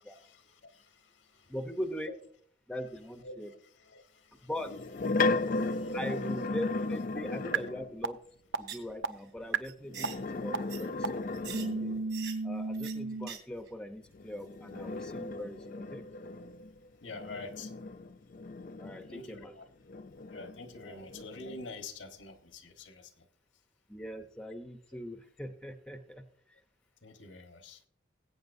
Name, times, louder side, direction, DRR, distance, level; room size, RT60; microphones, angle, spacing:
voice 1, 0.0-1.5 3.2-4.5 5.0-6.0 6.9-7.0 8.8-8.9 17.0-17.8 19.1-19.7 20.3-23.3 27.0-27.8, left 3 dB, 90° left, 6 dB, 1.4 m, -47 dB
voice 2, 1.5-2.1 2.7-3.5 4.4-4.7 5.9-8.2 8.6-11.3 11.8-12.0 12.4-16.0 18.8-19.5 20.8-21.0 23.9-26.2, equal, 5° left, 7 dB, 0.8 m, -41 dB
sound 1, 4.6-7.9 9.8-12.2 14.1-19.4 19.9-21.6, left 3 dB, 45° left, 0.4 m, -35 dB
sound 2, 7.5-7.6 8.0-8.1 8.5-8.6 9.0-9.1 9.5-9.6 10.0-10.1 10.5-10.6 11.0-11.1 11.5-13.3, right 4 dB, 85° right, 0.7 m, -32 dB
sound 3, 8.6-8.9 9.2-9.3 9.6-10.2 10.7-10.8 11.3-11.6 12.1-12.4 12.7-12.9 13.2-13.4 13.7-13.8, right 9 dB, 65° right, 2.9 m, -43 dB
20.5 x 8.5 x 2.7 m, 0.63 s
head